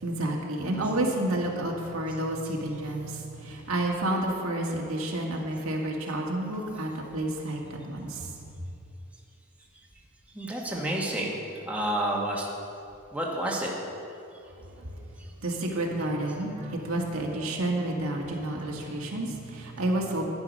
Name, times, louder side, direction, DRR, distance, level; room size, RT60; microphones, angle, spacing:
voice 1, 0.0-8.3 14.8-15.0 15.4-20.2, right 1 dB, 90° right, -1 dB, 1.7 m, -30 dB
voice 2, 10.3-11.4 11.6-12.5 13.1-13.7, right 1 dB, 5° right, -3 dB, 1.3 m, -29 dB
10.5 x 10.5 x 5.3 m, 2.6 s
head